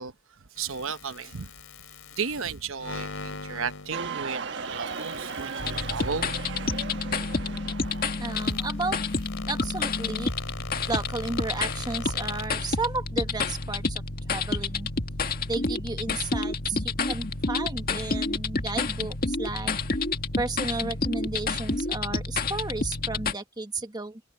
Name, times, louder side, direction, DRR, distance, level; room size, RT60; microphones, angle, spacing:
voice 1, 0.0-1.5 2.2-6.3, right 5 dB, 75° right, 1.0 m, -34 dB
sound 1, 0.6-12.5, left 4 dB, 80° left, 3.3 m, -43 dB
sound 2, 3.9-8.8, right 5 dB, 60° right, 1.4 m, -37 dB
sound 3, 5.6-23.3, left 3 dB, 45° left, 1.9 m, -29 dB
voice 2, 8.2-10.3 10.9-14.0 14.3-14.9 15.5-19.7 20.4-24.2, right 3 dB, 20° right, 1.3 m, -33 dB
head